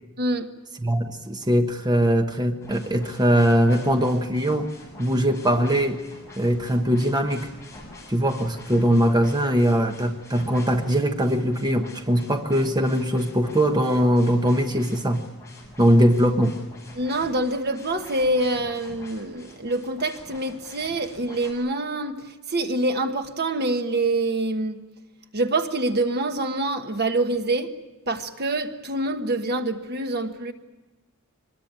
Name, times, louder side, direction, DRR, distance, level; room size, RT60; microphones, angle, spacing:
voice 1, 0.2-0.5 16.9-24.8 25.3-27.7 28.1-30.5, right 2 dB, 45° right, 1.4 m, -26 dB
voice 2, 0.8-4.7 5.0-6.0 6.4-7.5 8.1-15.2 15.8-16.6, equal, 20° right, 1.2 m, -21 dB
sound 1, 2.6-21.5, left 1 dB, 15° left, 6.7 m, -45 dB
24.0 x 21.5 x 8.9 m
head